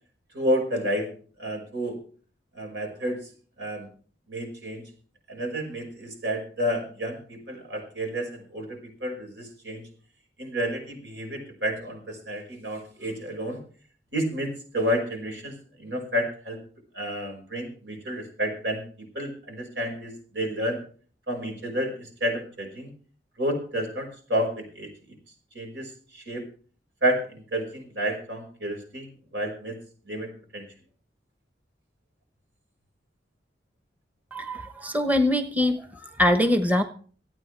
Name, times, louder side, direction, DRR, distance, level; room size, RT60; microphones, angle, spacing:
voice 1, 0.3-1.1 1.4-2.0 2.5-3.3 3.6-3.9 4.3-4.8 5.3-9.8 10.4-13.6 14.1-16.6 16.9-18.8 19.1-20.8 21.3-22.9 23.4-24.9 25.5-26.5 27.0-29.1 29.3-29.8 30.1-30.6, equal, 85° right, 3 dB, 5.3 m, -30 dB
voice 2, 34.3-36.8, left 1 dB, 10° right, 7 dB, 1.0 m, -23 dB
26.0 x 8.9 x 3.3 m, 0.43 s
head